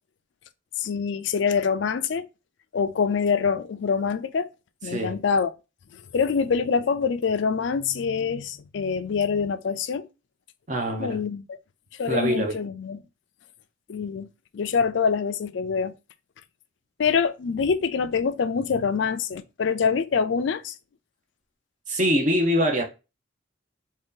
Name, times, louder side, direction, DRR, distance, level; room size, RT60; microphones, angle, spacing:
voice 1, 0.8-2.3 2.7-4.5 4.8-5.5 6.1-10.1 11.0-11.6 12.0-13.0 13.9-14.3 14.5-15.9 17.0-20.7, left 6 dB, 70° left, 0.4 m, -25 dB
voice 2, 4.8-5.2 10.7-11.2 12.1-12.6 21.9-22.8, equal, 40° right, 0.6 m, -24 dB
3.2 x 2.8 x 3.7 m
head